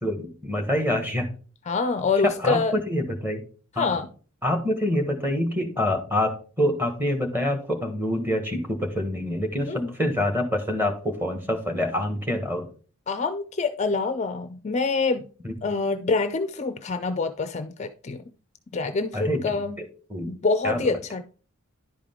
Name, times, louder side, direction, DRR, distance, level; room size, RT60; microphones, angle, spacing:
voice 1, 0.0-1.3 2.2-3.4 3.8-4.0 4.4-12.7 15.4-15.5 19.1-20.3 20.6-20.9, left 1 dB, 10° right, 1.3 m, -26 dB
voice 2, 1.7-2.7 3.8-4.1 9.7-9.9 13.1-15.2 15.6-18.2 18.7-19.8 20.3-21.2, left 4 dB, 30° left, 0.4 m, -26 dB
10.5 x 5.0 x 3.7 m
head